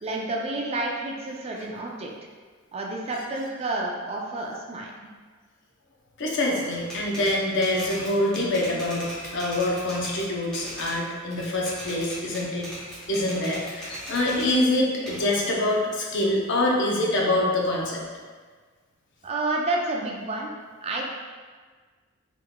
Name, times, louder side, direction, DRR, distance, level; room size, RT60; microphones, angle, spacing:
voice 1, 0.0-2.1 2.7-4.9 19.2-20.5 20.8-21.1, right 2 dB, 30° right, -1 dB, 0.4 m, -29 dB
voice 2, 6.2-12.7 13.1-18.0, left 1 dB, 60° left, -2 dB, 0.6 m, -25 dB
Typewriter, 6.7-11.0 11.3-14.6 15.1-16.7, equal, 5° left, 0.9 m, -39 dB
3.6 x 3.4 x 2.2 m, 1.5 s
head